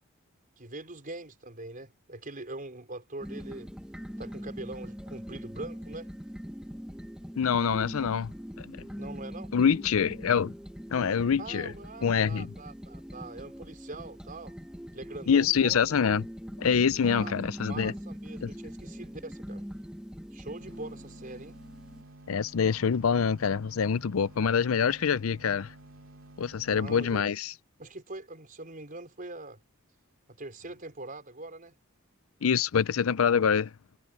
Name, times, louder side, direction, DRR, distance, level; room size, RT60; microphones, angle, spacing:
voice 1, 0.6-3.7 4.2-6.1 9.0-9.5 11.4-14.6 14.9-15.8 17.0-17.3 17.7-19.6 20.3-21.6 26.7-27.2 27.8-29.6 30.3-31.7, right 2 dB, 40° right, 4.7 m, -43 dB
sound 1, 3.2-22.0, equal, 5° right, 1.2 m, -42 dB
voice 2, 7.4-8.3 8.6-8.8 9.5-10.5 10.9-11.7 12.0-12.5 15.3-16.2 16.6-17.9 18.4-18.5 22.3-25.7 26.4-27.5 32.4-33.7, left 6 dB, 85° left, 0.5 m, -25 dB
sound 2, 20.6-27.2, right 1 dB, 70° right, 2.6 m, -52 dB
head